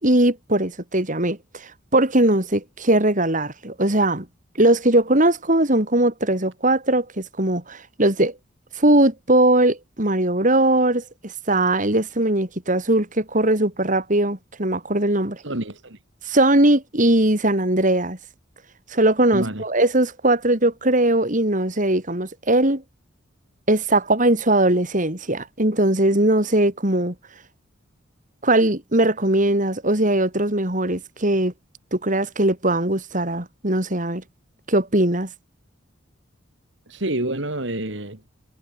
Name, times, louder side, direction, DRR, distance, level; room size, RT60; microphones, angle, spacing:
voice 1, 0.0-4.3 4.6-8.3 8.8-15.4 16.3-18.2 18.9-22.8 23.7-27.1 28.4-31.5 31.9-34.2 34.7-35.3, right 1 dB, 40° right, 3.9 m, -20 dB
voice 2, 15.4-16.0 19.3-19.6 36.9-38.3, right 1 dB, 65° right, 3.2 m, -28 dB
head